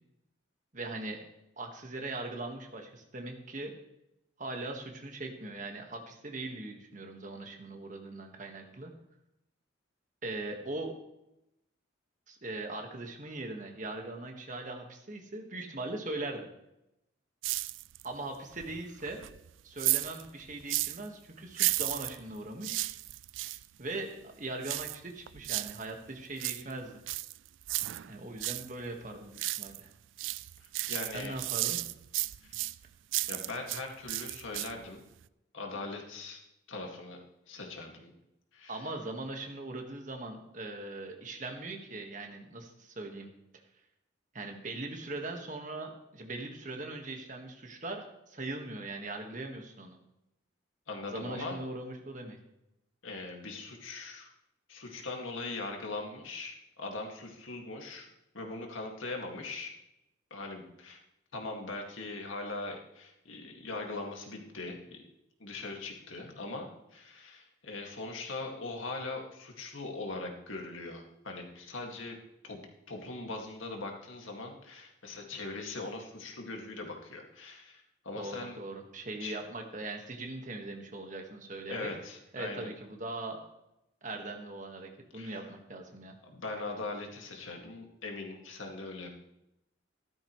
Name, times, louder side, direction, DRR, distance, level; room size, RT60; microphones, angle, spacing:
voice 1, 0.7-1.2 1.6-3.7 4.4-8.9 10.2-10.9 12.3-16.5 18.0-19.2 19.6-22.8 23.8-27.0 28.0-29.9 31.1-31.8 38.7-43.3 44.3-50.0 51.1-52.4 78.1-81.9 82.3-83.4 84.0-86.1, right 2 dB, 40° right, 3 dB, 1.6 m, -40 dB
sound 1, 17.4-18.2 18.5-21.1 21.5-23.6 24.6-25.8 26.2-28.7 29.0-29.9 30.2-33.8 34.1-34.9 35.2-35.3, right 18 dB, 70° right, 0.3 m, -34 dB
voice 2, 30.6-31.4 32.4-32.6 33.3-35.0 35.5-36.4 36.7-37.2 37.5-38.1 38.5-38.8 50.9-51.6 53.0-54.3 54.7-58.1 58.3-59.7 60.3-61.0 61.3-65.1 65.4-72.2 72.4-72.6 72.9-78.6 79.2-79.4 81.7-82.7 85.1-85.4 86.2-89.1, left 3 dB, 85° left, 2 dB, 2.1 m, -41 dB
14.5 x 12.5 x 3.2 m, 0.86 s
head